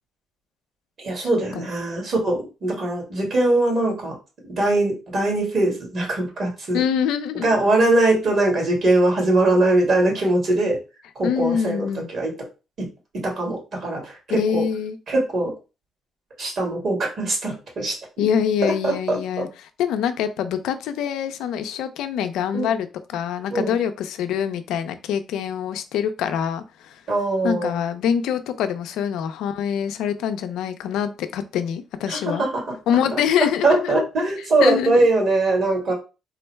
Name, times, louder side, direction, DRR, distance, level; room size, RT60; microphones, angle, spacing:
voice 1, 1.0-4.2 4.6-6.8 7.4-10.8 11.2-12.3 12.8-12.9 13.1-14.7 15.1-15.5 16.4-18.2 18.6-19.4 22.5-22.7 23.5-23.8 27.1-27.8 32.1-32.8 33.1-33.2 33.6-35.9, right 2 dB, 55° right, 2.1 m, -21 dB
voice 2, 6.7-7.5 11.2-12.1 14.3-15.0 18.2-27.0 27.4-32.5 32.9-34.1 34.6-35.1, left 8 dB, 90° left, 0.4 m, -25 dB
3.7 x 2.1 x 4.4 m
cardioid pair, 90°, 0 cm